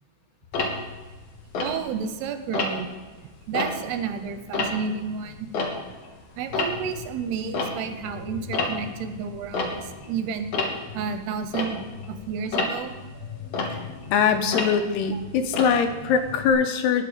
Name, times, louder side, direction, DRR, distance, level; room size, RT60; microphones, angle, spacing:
Tick-tock, 0.5-2.2 2.5-3.0 3.4-6.1 6.4-16.5, left 3 dB, 55° left, 1.9 m, -31 dB
voice 1, 1.6-2.9 3.5-5.5 6.4-10.6 10.9-12.9 15.1-15.2, right 6 dB, 80° right, 8 dB, 2.9 m, -31 dB
voice 2, 14.1-17.1, left 6 dB, 80° left, 7 dB, 2.9 m, -22 dB
19.5 x 6.5 x 5.1 m, 1.3 s
omnidirectional pair, 4.8 m